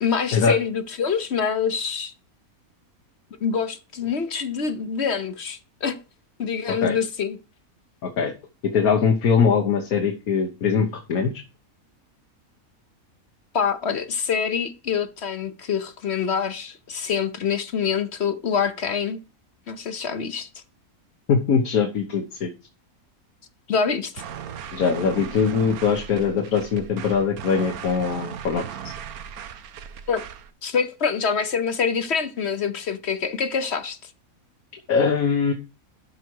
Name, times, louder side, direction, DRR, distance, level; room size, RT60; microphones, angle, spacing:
voice 1, 0.0-2.1 3.4-6.0 6.4-7.4 13.5-19.2 19.7-20.6 23.7-24.2 30.1-30.2 30.6-34.1, left 6 dB, 50° left, 1.0 m, -25 dB
voice 2, 8.0-8.3 8.6-11.3 21.3-22.5 24.7-28.6 34.9-35.5, left 6 dB, 75° left, 1.6 m, -22 dB
sound 1, 24.2-30.5, right 8 dB, 85° right, 1.3 m, -37 dB
12.0 x 4.9 x 4.6 m
omnidirectional pair, 1.5 m